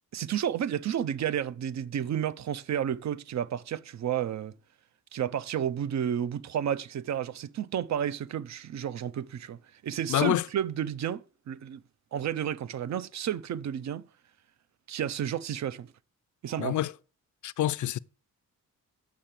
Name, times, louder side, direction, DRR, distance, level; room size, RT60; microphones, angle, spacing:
voice 1, 0.1-4.5 5.1-11.8 12.1-14.0 14.9-15.9 16.4-16.8, right 9 dB, 55° right, 0.6 m, -31 dB
voice 2, 10.1-10.5 16.6-16.9 17.4-18.0, left 13 dB, 65° left, 0.5 m, -27 dB
8.4 x 6.8 x 7.4 m
wide cardioid pair, 160°, 32 cm